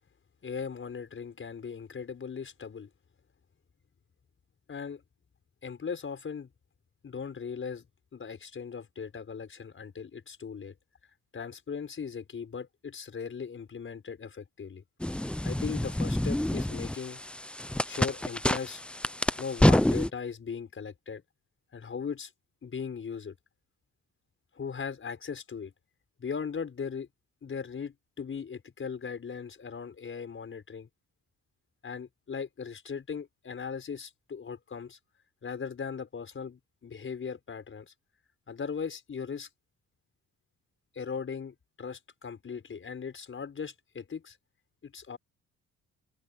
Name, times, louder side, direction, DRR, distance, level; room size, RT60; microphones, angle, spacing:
voice 1, 0.4-2.9 4.7-5.0 5.6-6.5 7.0-7.9 8.1-10.7 11.3-14.8 15.4-17.2 17.9-18.8 19.4-21.2 21.7-22.3 22.6-23.3 24.6-25.7 26.2-27.1 27.4-30.9 31.8-35.0 35.4-37.9 38.5-39.5 40.9-44.4 44.8-45.2, left 6 dB, 40° left, 5.9 m, -38 dB
sound 1, 15.0-20.1, left 1 dB, 5° left, 0.6 m, -27 dB
open air
cardioid pair, 90°, 30 cm